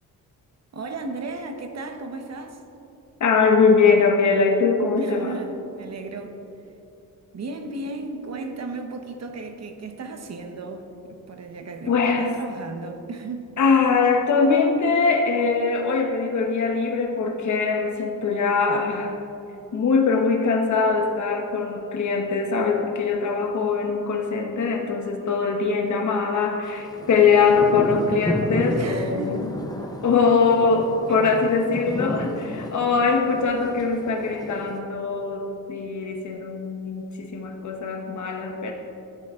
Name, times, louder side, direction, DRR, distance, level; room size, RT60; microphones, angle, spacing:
voice 1, 0.7-2.6 5.0-6.3 7.3-13.5 28.7-29.4 30.8-31.4, right 3 dB, 45° right, 5 dB, 1.0 m, -35 dB
voice 2, 3.2-5.3 11.9-12.3 13.6-19.2 19.7-29.4 30.0-38.7, left 4 dB, 55° left, 2 dB, 1.1 m, -22 dB
sound 1, 26.7-34.8, left 1 dB, 10° left, 0.8 m, -32 dB
13.5 x 9.2 x 3.7 m, 2.9 s
wide cardioid pair, 140°, 35 cm